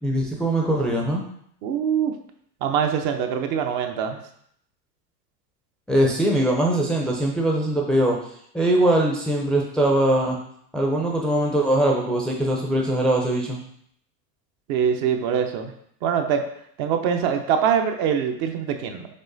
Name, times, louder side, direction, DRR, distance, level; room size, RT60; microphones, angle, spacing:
voice 1, 0.0-1.2 5.9-8.2 8.5-10.4 10.7-13.6, right 1 dB, ahead, -1 dB, 0.5 m, -21 dB
voice 2, 1.6-2.2 2.6-4.2 14.7-15.7 16.0-16.4 16.8-19.1, right 8 dB, 50° right, 5 dB, 0.7 m, -23 dB
5.4 x 3.6 x 2.6 m, 0.68 s
hypercardioid pair, 90°, 48 cm